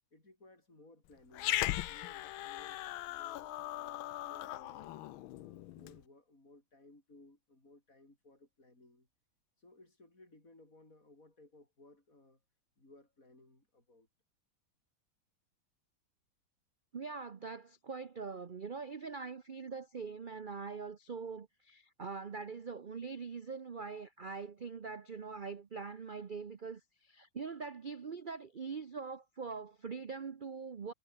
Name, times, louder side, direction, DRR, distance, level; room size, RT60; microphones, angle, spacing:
voice 1, 0.1-4.9 5.4-9.1 9.6-12.4 12.8-14.1, left 2 dB, 40° left, 7.7 m, -61 dB
Growling, 1.3-6.0, left 15 dB, 85° left, 1.5 m, -38 dB
voice 2, 16.9-30.9, right 5 dB, 75° right, 0.4 m, -43 dB
omnidirectional pair, 2.2 m